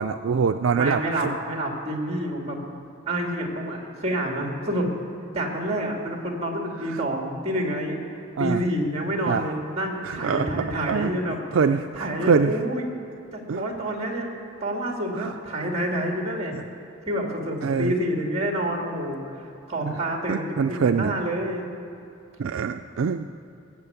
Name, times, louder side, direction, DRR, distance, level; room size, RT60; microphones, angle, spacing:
voice 1, 0.0-1.4 8.4-8.6 9.3-9.4 10.0-11.1 11.5-12.5 13.5-13.6 15.2-15.3 16.5-16.6 17.6-17.9 19.8-20.0 20.3-21.1 22.4-23.3, right 6 dB, 70° right, 8 dB, 0.4 m, -24 dB
voice 2, 0.7-2.6 3.1-4.9 5.3-11.4 11.9-12.9 13.3-14.3 14.6-16.6 17.1-21.7, right 1 dB, 30° right, 1 dB, 2.2 m, -28 dB
18.0 x 8.4 x 6.9 m, 2.6 s
head